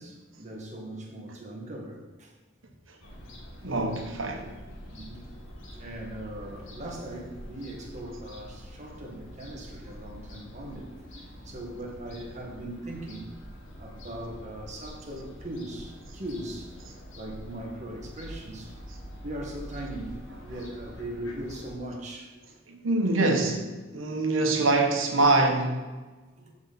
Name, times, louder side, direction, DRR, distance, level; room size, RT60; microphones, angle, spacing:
voice 1, 0.0-2.3 4.9-5.2 5.7-13.3 13.8-16.7 17.2-18.7 19.2-22.4 26.4-26.5, right 1 dB, 35° right, 2.1 m, -39 dB
Fowl / Gull seagull, 3.0-21.7, equal, 80° left, 2.2 m, -45 dB
voice 2, 3.6-4.5 22.7-25.8, right 2 dB, 85° right, 1.5 m, -24 dB
14.0 x 5.6 x 4.4 m
head